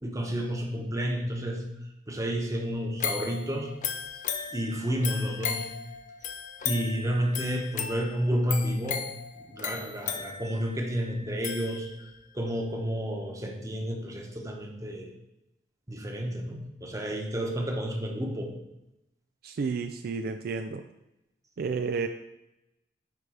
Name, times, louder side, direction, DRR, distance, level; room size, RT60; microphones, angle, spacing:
voice 1, 0.0-1.6 2.1-3.7 4.5-5.7 6.6-9.1 9.4-11.9 12.3-15.1 15.9-18.6, equal, 20° right, 1 dB, 1.1 m, -31 dB
sound 1, 3.0-12.3 12.7-12.8, left 7 dB, 45° left, 0.6 m, -36 dB
voice 2, 19.4-20.8 21.6-22.1, right 5 dB, 55° right, 8 dB, 0.4 m, -31 dB
9.3 x 3.4 x 4.9 m, 0.91 s
head